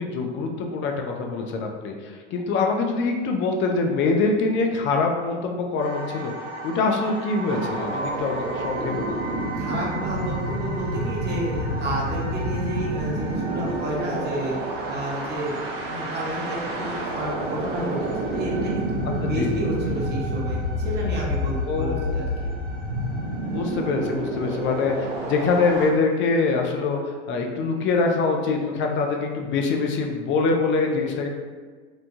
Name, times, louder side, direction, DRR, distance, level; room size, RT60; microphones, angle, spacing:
voice 1, 0.0-6.3 6.6-9.4 19.2-19.6 21.7-22.3 23.5-31.3, left 4 dB, 35° left, 2 dB, 0.4 m, -24 dB
sound 1, 5.8-24.8, right 2 dB, 85° right, 0.9 m, -38 dB
sound 2, 7.5-25.9, right 1 dB, 55° right, 0.7 m, -29 dB
voice 2, 9.5-15.6 15.9-22.5, right 1 dB, 30° right, -4 dB, 0.9 m, -31 dB
3.0 x 2.2 x 2.6 m, 1.5 s
hypercardioid pair, 85°, 36 cm